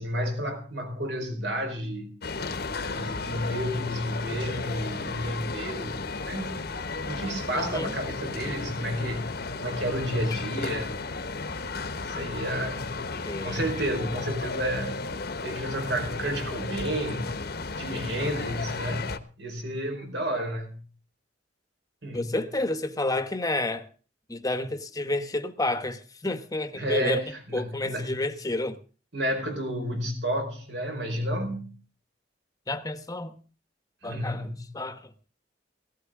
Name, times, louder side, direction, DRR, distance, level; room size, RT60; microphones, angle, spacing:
voice 1, 0.0-2.2 2.8-6.0 6.2-6.6 7.1-9.3 9.6-10.9 12.0-13.0 13.4-15.0 15.4-17.4 17.8-20.9 22.0-22.3 26.7-28.2 29.1-31.8 34.0-34.6, equal, 70° right, 4.8 m, -31 dB
sound 1, 2.2-19.2, left 3 dB, 60° left, 1.1 m, -34 dB
voice 2, 7.5-7.9 13.2-13.7 22.1-23.9 24.3-27.2 27.5-28.8 32.7-33.3 34.0-35.1, left 2 dB, 20° left, 1.1 m, -30 dB
17.0 x 15.0 x 3.7 m
head